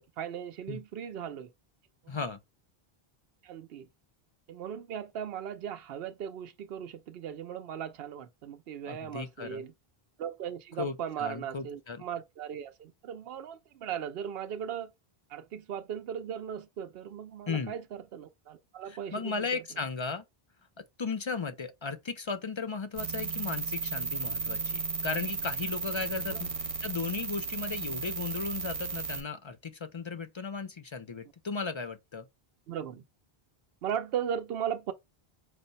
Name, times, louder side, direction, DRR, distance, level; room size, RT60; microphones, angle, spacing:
voice 1, 0.0-1.5 2.0-2.2 3.4-3.9 4.5-9.7 10.2-14.9 15.3-19.6 26.3-26.4 32.7-33.0 33.8-34.9, right 9 dB, 75° right, 0.9 m, -37 dB
voice 2, 2.1-2.4 8.9-9.6 10.8-12.0 17.5-17.7 18.9-20.2 20.8-32.3, left 4 dB, 45° left, 0.4 m, -36 dB
sound 1, 23.0-29.2, right 4 dB, 40° right, 0.6 m, -34 dB
4.9 x 2.1 x 4.0 m
omnidirectional pair, 1.0 m